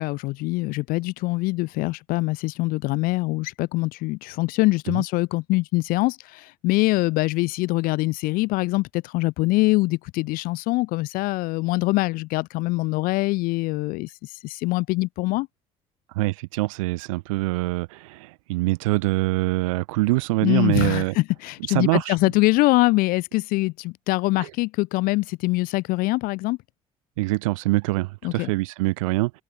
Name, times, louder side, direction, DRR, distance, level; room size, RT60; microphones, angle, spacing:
voice 1, 0.0-15.5 20.4-26.6 28.2-28.5, left 22 dB, 55° left, 0.4 m, -24 dB
voice 2, 16.1-21.1 21.7-22.2 24.4-24.5 27.2-29.3, right 22 dB, 70° right, 0.4 m, -24 dB
open air
figure-of-eight pair, 55°, 18 cm